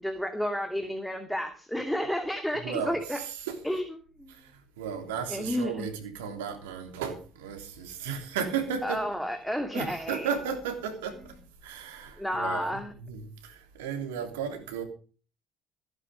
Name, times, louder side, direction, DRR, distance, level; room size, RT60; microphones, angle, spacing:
voice 1, 0.0-3.2 3.6-3.8 4.2-4.3 5.3-5.9 8.8-10.3 12.2-12.9, equal, 5° left, 2.6 m, -31 dB
voice 2, 2.5-3.6 4.3-9.0 9.7-14.8, right 7 dB, 85° right, 3.2 m, -35 dB
16.0 x 10.0 x 5.2 m
hypercardioid pair, 65°, 0 cm